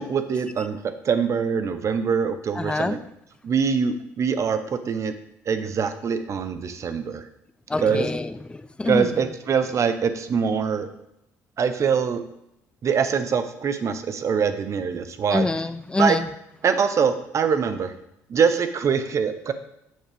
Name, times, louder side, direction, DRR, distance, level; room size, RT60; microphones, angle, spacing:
voice 1, 0.0-3.0 3.4-5.1 5.5-7.2 7.8-8.1 8.9-10.9 11.6-12.2 12.8-15.5 16.0-16.2 16.6-17.9 18.3-19.5, right 6 dB, 45° right, 10 dB, 0.9 m, -23 dB
voice 2, 2.5-3.0 7.7-9.1 15.3-16.3, left 2 dB, 15° left, 12 dB, 0.6 m, -25 dB
7.5 x 7.3 x 3.5 m, 0.80 s
supercardioid pair, 70°, 7 cm